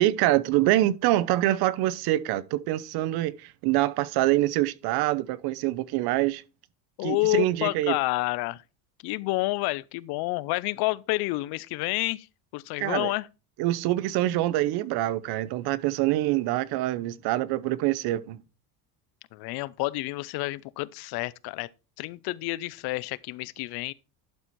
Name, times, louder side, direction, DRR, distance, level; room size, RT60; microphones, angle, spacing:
voice 1, 0.0-6.4 7.0-8.0 12.8-13.1 13.6-18.4, right 15 dB, 75° right, 0.8 m, -25 dB
voice 2, 7.0-8.6 9.0-12.3 12.5-13.3 19.3-21.7 22.0-23.9, left 20 dB, 70° left, 0.6 m, -29 dB
11.5 x 4.3 x 4.6 m
cardioid pair, 125°, 39 cm